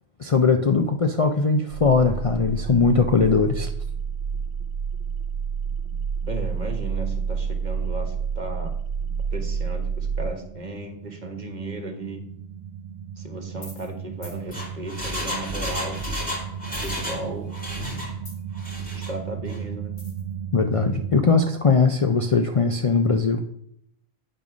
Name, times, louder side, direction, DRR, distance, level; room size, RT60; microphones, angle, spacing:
voice 1, 0.2-3.7 20.5-23.4, left 4 dB, 40° left, 4 dB, 0.6 m, -20 dB
sound 1, 1.7-21.3, right 6 dB, 65° right, 0.7 m, -31 dB
voice 2, 6.3-8.7 9.3-12.2 13.2-16.0 16.8-17.5 18.9-19.9, right 1 dB, 45° right, 4 dB, 1.5 m, -35 dB
sound 2, 13.6-13.9 14.2-14.4 16.6-17.5 17.8-18.6 20.0-20.3, left 1 dB, 65° left, 2.4 m, -41 dB
Engine, 14.3-17.2 17.5-18.1 18.5-19.1 19.5-19.6, left 1 dB, 5° left, 2.8 m, -32 dB
8.9 x 5.4 x 6.1 m, 0.71 s
omnidirectional pair, 1.1 m